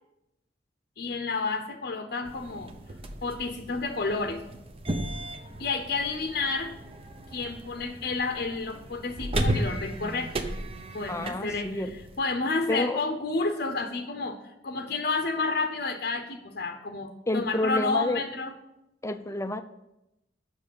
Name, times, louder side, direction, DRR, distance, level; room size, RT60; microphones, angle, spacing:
voice 1, 1.0-2.7 3.2-4.4 5.6-6.7 7.3-10.3 10.9-11.8 12.2-18.5, left 3 dB, 55° left, 6 dB, 0.7 m, -30 dB
sound 1, 2.2-12.2, right 1 dB, 30° right, 0.7 m, -35 dB
voice 2, 11.1-12.0 12.7-13.0 17.3-18.2 19.0-19.6, left 1 dB, 15° left, 10 dB, 0.5 m, -29 dB
7.5 x 6.2 x 6.9 m, 0.88 s
head